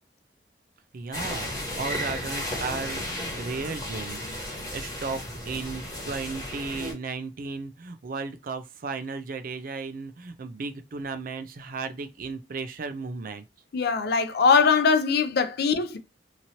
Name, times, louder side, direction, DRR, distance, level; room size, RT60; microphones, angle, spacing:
voice 1, 0.9-13.4, right 4 dB, 55° right, 0.4 m, -35 dB
sound 1, 1.1-6.9, left 1 dB, 25° left, 1.3 m, -34 dB
voice 2, 13.7-16.0, left 5 dB, 65° left, 0.5 m, -21 dB
3.0 x 2.7 x 2.8 m
head